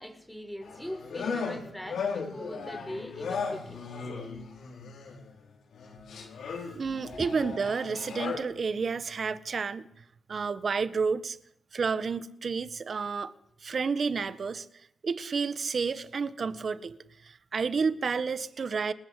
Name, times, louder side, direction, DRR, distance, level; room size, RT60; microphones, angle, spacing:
voice 1, 0.0-3.8 7.1-7.3, equal, 5° left, 5 dB, 6.4 m, -41 dB
sound 1, 0.6-5.3 5.7-8.4, left 5 dB, 80° left, 6.1 m, -36 dB
voice 2, 6.7-9.9 10.3-11.4 11.7-13.3 13.6-14.7 15.0-17.0 17.2-18.9, right 5 dB, 55° right, 14 dB, 1.5 m, -30 dB
28.0 x 20.5 x 8.3 m, 0.72 s
cardioid pair, 55°, 0 cm